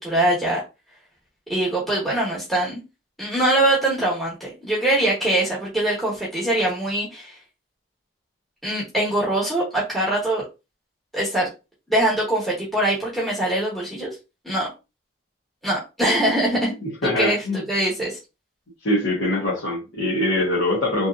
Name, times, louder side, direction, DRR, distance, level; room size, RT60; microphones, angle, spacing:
voice 1, 0.0-0.6 1.5-2.8 3.2-7.4 8.6-10.4 11.1-11.5 11.9-14.1 14.4-14.7 15.6-16.7 17.0-18.2, right 1 dB, ahead, -7 dB, 1.1 m, -23 dB
voice 2, 16.8-17.6 18.8-21.1, left 1 dB, 90° left, -5 dB, 1.2 m, -23 dB
3.3 x 2.7 x 2.3 m, 0.28 s
head